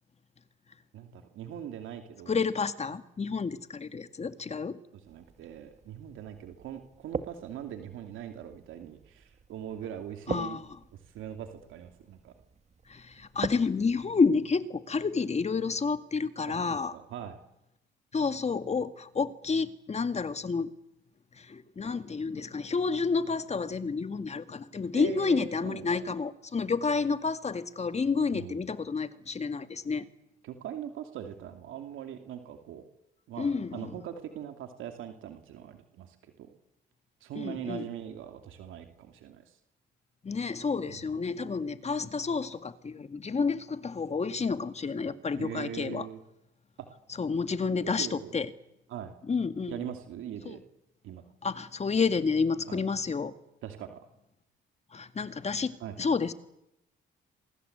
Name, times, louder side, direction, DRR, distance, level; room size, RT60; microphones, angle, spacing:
voice 1, 0.9-2.4 4.9-10.6 11.1-12.3 16.5-17.4 24.9-26.0 28.3-28.6 30.4-32.8 33.3-36.5 37.2-39.6 40.9-41.0 45.4-46.2 46.8-46.9 47.7-48.3 48.9-49.1 49.7-50.6 51.0-51.2 52.7-52.8 53.6-54.0 55.8-56.0, right 10 dB, 85° right, 6 dB, 2.7 m, -41 dB
voice 2, 2.3-4.8 10.3-10.6 12.9-16.9 18.1-20.7 21.4-30.1 33.4-33.9 37.4-37.8 40.2-46.1 47.2-48.5 49.3-49.7 50.5-50.6 51.4-53.3 54.9-56.3, left 4 dB, 35° left, 11 dB, 2.0 m, -30 dB
sound 1, 5.0-14.2, right 5 dB, 35° right, 1.7 m, -43 dB
27.5 x 24.0 x 8.1 m, 0.85 s
cardioid pair, 90°, 20 cm